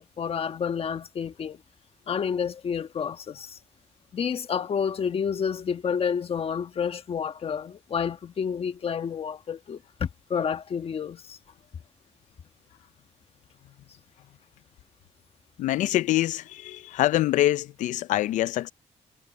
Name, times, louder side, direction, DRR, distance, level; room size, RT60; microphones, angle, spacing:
voice 1, 0.0-1.6 2.1-3.6 4.1-11.4, left 7 dB, 50° left, 1.3 m, -29 dB
voice 2, 15.6-18.7, left 14 dB, 85° left, 0.5 m, -25 dB
cardioid pair, 85°, 12 cm